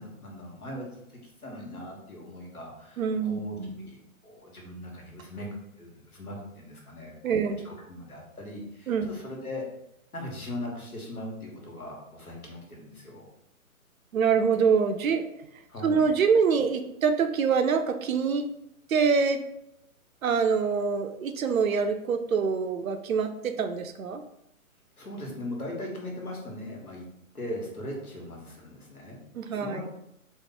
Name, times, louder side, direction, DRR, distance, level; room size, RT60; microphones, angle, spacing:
voice 1, 0.0-3.6 3.8-4.0 4.2-9.6 10.1-13.3 15.7-16.1 25.0-27.0 27.3-29.2 29.5-29.9, left 1 dB, 90° left, -1 dB, 1.2 m, -39 dB
voice 2, 3.0-3.9 7.2-7.7 8.9-9.2 14.1-15.2 15.8-18.4 18.9-19.4 20.2-24.2 29.3-29.8, right 5 dB, 70° right, 8 dB, 0.5 m, -25 dB
3.0 x 2.0 x 3.8 m, 0.83 s
figure-of-eight pair, 130°, 43 cm